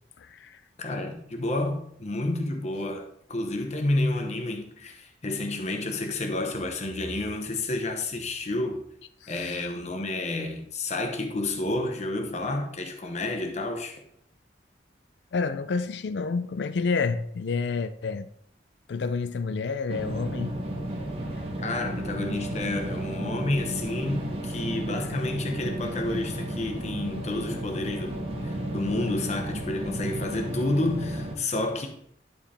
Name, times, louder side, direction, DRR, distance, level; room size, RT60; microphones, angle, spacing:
voice 1, 0.2-0.6 9.2-9.6 15.3-18.3 18.9-20.6, left 4 dB, 75° left, 0.4 m, -29 dB
voice 2, 0.8-8.8 9.3-14.0 21.6-31.9, left 2 dB, 40° left, 0.9 m, -30 dB
sound 1, 19.9-31.3, right 1 dB, 35° right, 1.3 m, -33 dB
11.0 x 4.9 x 3.4 m
head